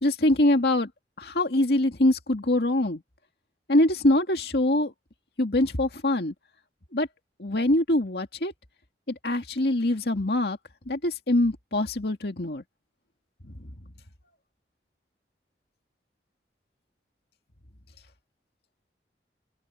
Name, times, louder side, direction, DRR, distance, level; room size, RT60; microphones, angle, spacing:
voice 1, 0.0-0.9 1.2-3.0 3.7-4.9 5.4-6.3 6.9-7.1 7.4-8.5 9.1-10.6 10.9-12.6 13.5-13.6, left 1 dB, 65° left, 2.1 m, -24 dB
open air
head